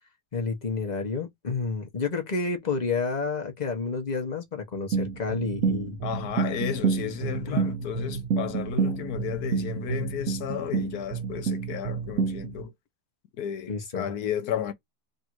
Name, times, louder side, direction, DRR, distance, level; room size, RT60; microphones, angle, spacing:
voice 1, 0.3-6.0 7.5-7.6 13.7-14.0, left 4 dB, 35° left, 0.7 m, -30 dB
sound 1, 4.9-12.6, right 6 dB, 65° right, 0.8 m, -29 dB
voice 2, 6.0-12.7 13.4-14.7, left 8 dB, 65° left, 1.0 m, -33 dB
3.4 x 2.6 x 4.5 m
omnidirectional pair, 2.1 m